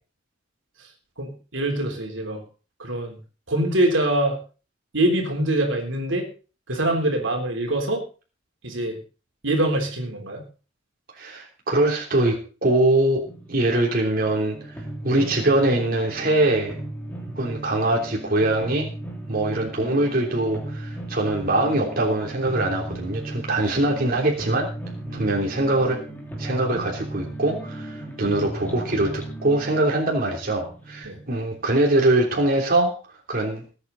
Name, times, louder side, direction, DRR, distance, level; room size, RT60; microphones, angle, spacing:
voice 1, 1.2-2.4 2.8-3.2 3.5-4.4 4.9-6.3 6.7-8.0 8.6-9.0 9.4-10.5 25.1-25.4 31.0-31.2, right 1 dB, 80° right, 2 dB, 3.6 m, -24 dB
voice 2, 11.2-14.6 15.0-16.8 17.3-18.9 19.3-24.7 25.1-26.0 26.4-32.9 33.3-33.6, right 2 dB, 50° right, -1 dB, 3.3 m, -23 dB
sound 1, 13.2-32.3, right 1 dB, 10° left, 3.2 m, -36 dB
19.5 x 8.9 x 4.0 m, 0.36 s
head